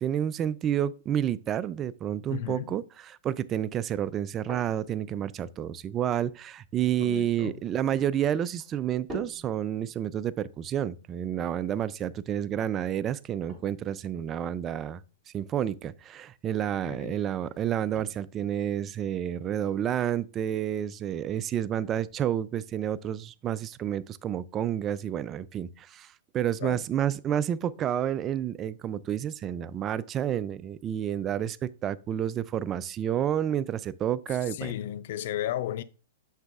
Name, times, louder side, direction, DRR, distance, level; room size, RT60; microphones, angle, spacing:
voice 1, 0.0-15.0 15.3-34.7, right 10 dB, 25° right, 0.3 m, -30 dB
voice 2, 2.3-2.8 7.0-7.6 16.9-17.2 26.6-26.8 34.5-35.8, left 12 dB, 60° left, 0.5 m, -34 dB
sound 1, 4.0-22.1, equal, 10° right, 3.4 m, -52 dB
8.0 x 6.1 x 2.4 m
hypercardioid pair, 135°, 0 cm